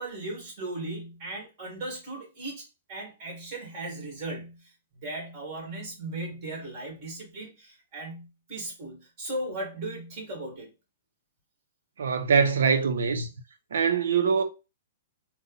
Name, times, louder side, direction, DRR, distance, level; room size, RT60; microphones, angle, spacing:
voice 1, 0.0-10.7, right 2 dB, 25° right, 2.2 m, -37 dB
voice 2, 12.0-13.3 13.7-14.4, right 6 dB, 85° right, 0.8 m, -23 dB
4.1 x 2.4 x 4.0 m
hypercardioid pair, 170°, 0 cm